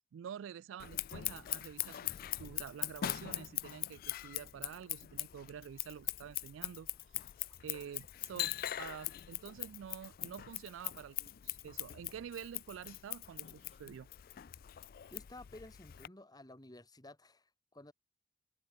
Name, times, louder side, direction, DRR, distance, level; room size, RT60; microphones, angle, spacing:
voice 1, 0.1-6.9 7.6-14.1, right 8 dB, 85° right, 0.3 m, -48 dB
Scissors, 0.8-16.1, left 14 dB, 50° left, 0.4 m, -42 dB
sound 1, 6.1-6.2 6.8-6.9 7.1-7.7 8.0-8.3 9.8-10.4 10.6-12.0 12.6-14.0 14.7-15.6, right 1 dB, 65° right, 3.2 m, -73 dB
voice 2, 15.1-17.9, left 1 dB, 20° left, 2.7 m, -53 dB
open air
head